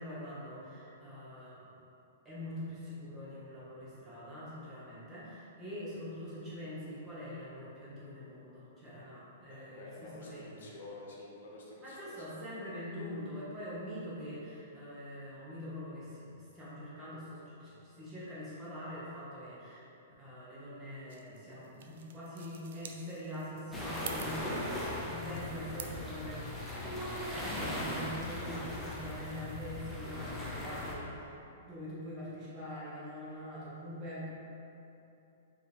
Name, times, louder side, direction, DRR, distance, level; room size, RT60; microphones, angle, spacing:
voice 1, 0.0-1.7 2.2-10.7 11.8-19.8 20.2-26.4 26.8-34.3, equal, 15° right, -10 dB, 1.0 m, -44 dB
voice 2, 9.5-12.5, left 2 dB, 70° left, -3 dB, 0.9 m, -50 dB
sound 1, 21.1-26.1, right 7 dB, 55° right, 0.3 m, -49 dB
sound 2, 23.7-30.9, left 1 dB, 5° left, 0.5 m, -39 dB
4.6 x 2.8 x 3.4 m, 2.8 s
hypercardioid pair, 170°, 0 cm